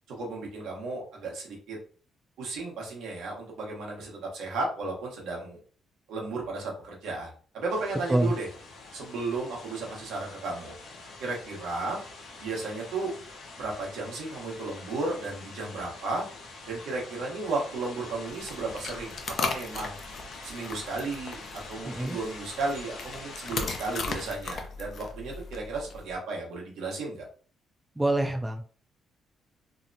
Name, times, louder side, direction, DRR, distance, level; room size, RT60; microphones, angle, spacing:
voice 1, 0.1-1.8 2.4-5.6 6.1-8.5 8.9-10.7 11.2-12.0 12.4-13.1 13.6-16.2 16.7-19.9 20.4-27.3, right 3 dB, 85° right, -1 dB, 0.9 m, -34 dB
sound 1, 7.7-24.3, left 3 dB, 85° left, 0.8 m, -45 dB
sound 2, 18.3-26.1, left 4 dB, 55° left, 0.4 m, -37 dB
voice 2, 21.8-22.2 28.0-28.6, right 1 dB, 10° right, 3 dB, 0.4 m, -26 dB
2.8 x 2.1 x 2.5 m, 0.42 s
cardioid pair, 90°, 0 cm